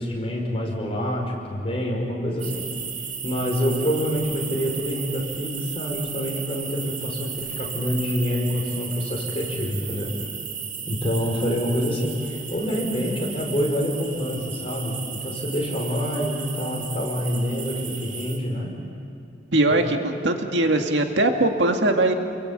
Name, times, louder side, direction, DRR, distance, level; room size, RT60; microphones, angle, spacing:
voice 1, 0.0-2.7 3.2-10.1 10.9-18.7, equal, 35° left, -1 dB, 5.3 m, -26 dB
sound 1, 2.4-18.4, right 6 dB, 45° right, 2.8 m, -34 dB
voice 2, 19.5-22.1, right 2 dB, 85° right, 4 dB, 2.0 m, -21 dB
29.0 x 22.0 x 8.9 m, 2.5 s
head